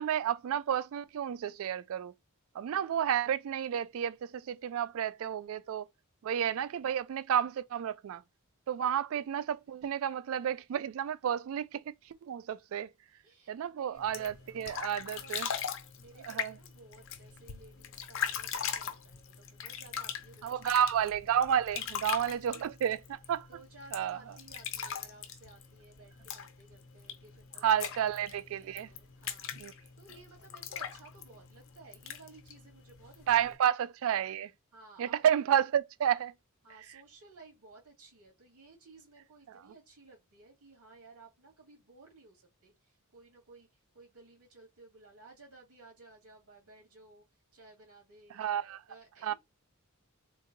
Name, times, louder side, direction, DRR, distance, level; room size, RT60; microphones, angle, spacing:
voice 1, 0.0-2.1 2.5-5.9 6.2-8.2 8.7-11.8 12.2-12.9 13.5-15.5 16.3-16.5 20.4-23.5 23.9-24.2 27.6-28.9 29.6-29.7 33.3-34.5 35.0-36.3 48.4-48.8 49.2-49.3, right 9 dB, 65° right, 0.3 m, -31 dB
voice 2, 13.2-15.4 16.0-20.8 21.8-22.7 23.5-33.5 34.7-35.6 36.6-47.2 47.5-48.4 48.9-49.3, right 3 dB, 90° right, 2.2 m, -57 dB
sound 1, 14.0-33.6, left 8 dB, 60° left, 0.6 m, -41 dB
3.8 x 2.6 x 2.6 m
head